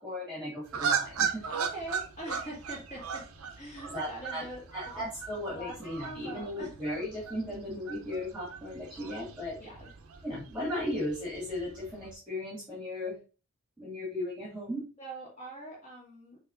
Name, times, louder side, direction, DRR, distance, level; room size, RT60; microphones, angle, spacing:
voice 1, 0.0-1.4 3.9-4.4 4.7-9.6 10.2-13.2 13.8-14.8, left 1 dB, ahead, -6 dB, 1.9 m, -36 dB
sound 1, 0.7-12.1, right 6 dB, 85° right, 0.7 m, -38 dB
voice 2, 1.5-3.2 3.6-4.6 5.5-5.7 6.0-7.0 9.6-9.9 15.0-16.4, right 1 dB, 30° left, -5 dB, 2.1 m, -43 dB
5.9 x 3.2 x 2.6 m, 0.34 s
head